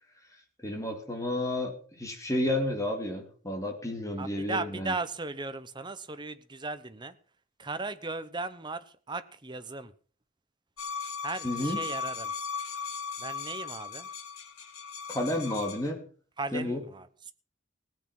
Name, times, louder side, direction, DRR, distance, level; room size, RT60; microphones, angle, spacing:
voice 1, 0.6-4.9 11.4-11.8 15.1-16.0 16.5-16.8, left 1 dB, 15° left, 3 dB, 2.7 m, -31 dB
voice 2, 4.2-7.1 7.6-9.9 11.2-12.3 13.2-14.1 16.4-17.3, right 3 dB, 20° right, 12 dB, 0.9 m, -37 dB
sound 1, 10.8-15.9, left 6 dB, 85° left, 2.4 m, -37 dB
17.0 x 8.7 x 6.1 m, 0.42 s
head